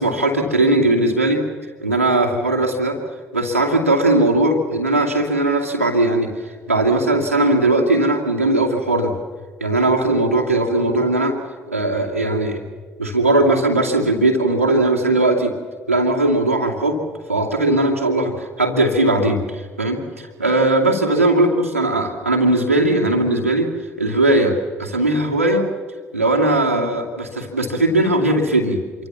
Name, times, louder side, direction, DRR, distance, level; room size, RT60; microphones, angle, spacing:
voice 1, 0.0-1.4 1.8-3.0 3.3-6.3 6.7-9.1 9.6-11.4 11.7-12.6 13.0-15.5 15.9-17.0 17.3-23.7 24.0-25.7 26.1-28.8, right 2 dB, 90° right, -1 dB, 2.5 m, -18 dB
27.0 x 24.0 x 7.3 m, 1.5 s
figure-of-eight pair, 50°, 7 cm